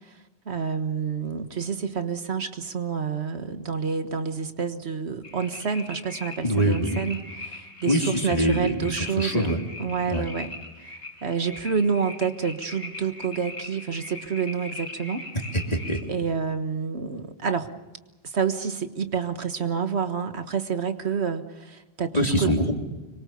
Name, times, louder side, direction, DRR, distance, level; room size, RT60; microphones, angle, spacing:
voice 1, 0.4-10.5 11.2-15.2 16.1-17.7 18.2-22.5, right 6 dB, 80° right, 8 dB, 1.7 m, -28 dB
sound 1, 5.2-16.0, left 2 dB, 60° left, 5.6 m, -40 dB
voice 2, 6.4-7.0 7.8-9.6 10.1-10.2 15.5-16.0 22.1-22.7, equal, 35° left, 2 dB, 3.3 m, -24 dB
25.5 x 23.0 x 6.9 m, 1.2 s
omnidirectional pair, 1.1 m